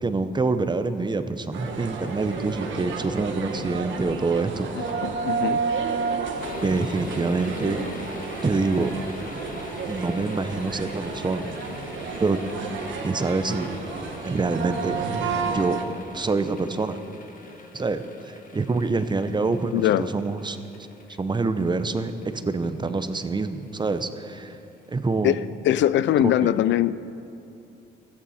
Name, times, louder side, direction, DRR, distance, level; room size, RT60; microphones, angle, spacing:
voice 1, 0.0-4.7 6.6-7.8 8.4-8.9 9.9-11.5 12.2-12.4 13.0-13.7 14.2-14.9 15.4-15.8 16.1-17.0 17.7-20.6 21.2-24.6 24.9-25.3 26.4-26.5, right 3 dB, 20° right, 10 dB, 0.8 m, -26 dB
sound 1, 1.5-15.8, right 5 dB, 70° right, 1.4 m, -31 dB
voice 2, 4.7-5.6 19.7-20.1 25.2-26.9, left 12 dB, 70° left, 16 dB, 0.4 m, -22 dB
sound 2, 6.4-25.0 25.3-25.4, left 2 dB, 45° left, 1.6 m, -43 dB
16.0 x 14.5 x 4.3 m, 2.7 s
cardioid pair, 90°, 20 cm